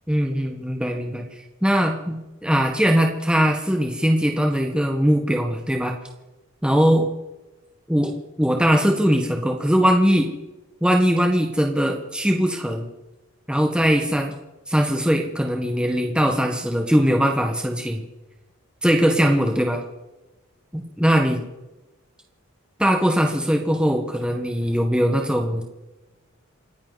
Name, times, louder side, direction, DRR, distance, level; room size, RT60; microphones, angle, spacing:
voice 1, 0.1-1.2 1.6-2.2 2.4-6.0 6.6-7.1 7.9-10.3 10.8-12.9 13.5-14.3 14.7-18.1 18.8-19.8 20.7-21.4 22.8-25.6, equal, 5° right, 2 dB, 1.4 m, -20 dB
29.0 x 10.0 x 4.1 m, 1.1 s
head